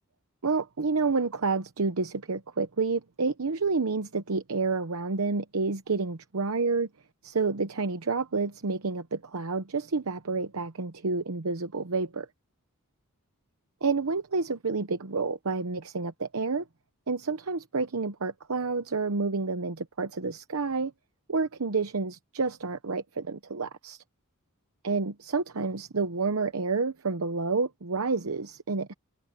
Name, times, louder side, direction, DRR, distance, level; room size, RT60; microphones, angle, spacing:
voice 1, 0.4-6.9 7.2-12.3 13.8-16.7 17.1-20.9 21.3-24.0 24.8-28.9, right 4 dB, 70° right, 0.9 m, -29 dB
head